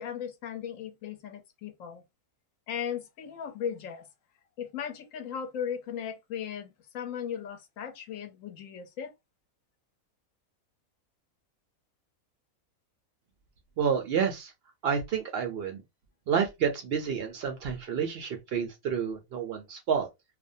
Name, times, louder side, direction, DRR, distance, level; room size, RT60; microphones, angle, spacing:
voice 1, 0.0-2.0 2.7-4.1 4.6-9.1, left 8 dB, 70° left, 0.9 m, -37 dB
voice 2, 13.8-14.5 14.8-15.8 16.3-20.1, right 7 dB, 70° right, 0.5 m, -29 dB
2.5 x 2.1 x 2.6 m
omnidirectional pair, 1.5 m